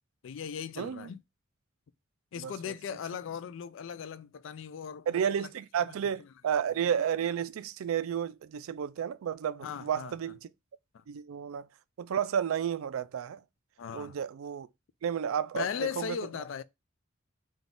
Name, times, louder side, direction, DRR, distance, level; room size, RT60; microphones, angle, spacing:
voice 1, 0.2-1.2 2.3-5.2 9.6-10.1 10.9-11.0 13.8-14.2 15.5-16.6, left 7 dB, 65° left, 0.3 m, -38 dB
voice 2, 0.8-1.1 2.4-2.5 5.1-10.4 11.1-11.7 12.0-13.4 13.9-14.7 15.0-15.7 16.0-16.2, right 8 dB, 80° right, 0.3 m, -31 dB
3.9 x 2.4 x 3.6 m
head